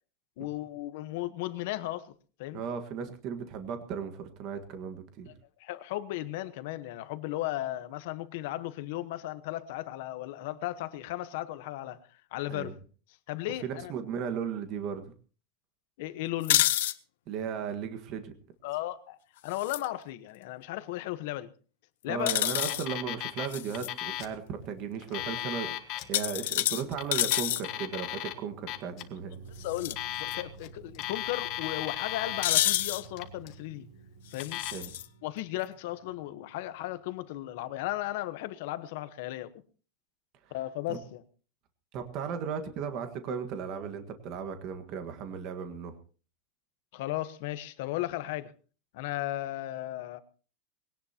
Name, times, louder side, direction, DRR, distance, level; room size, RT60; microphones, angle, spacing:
voice 1, 0.4-2.1 2.4-2.6 5.6-12.0 12.3-12.8 13.3-13.9 16.0-16.7 18.6-19.2 19.4-21.5 22.0-22.5 29.6-33.9 34.3-34.6 35.2-39.5 40.5-41.2 46.9-48.5 48.9-50.2, left 15 dB, 55° left, 1.1 m, -35 dB
voice 2, 2.5-5.3 12.5-12.7 13.6-15.1 17.3-18.3 22.1-29.4 34.7-34.9 40.9-41.0 41.9-45.9, right 7 dB, 35° right, 1.6 m, -36 dB
sound 1, 16.4-16.9 19.5-19.9 22.3-22.9 23.5-23.9 26.1-27.6 29.7-29.9 30.3-30.4 32.4-33.0 34.4-35.1, left 14 dB, 80° left, 0.8 m, -28 dB
Alarm, 22.5-23.5 23.7-24.3 25.0-26.1 26.9-28.3 28.7-29.0 29.8-30.7 30.9-32.5 33.0-33.5 34.3-34.7, left 14 dB, 35° left, 1.4 m, -36 dB
sound 2, 29.3-37.5, right 5 dB, 70° right, 3.6 m, -52 dB
21.0 x 17.5 x 2.9 m
supercardioid pair, 180°, 0 cm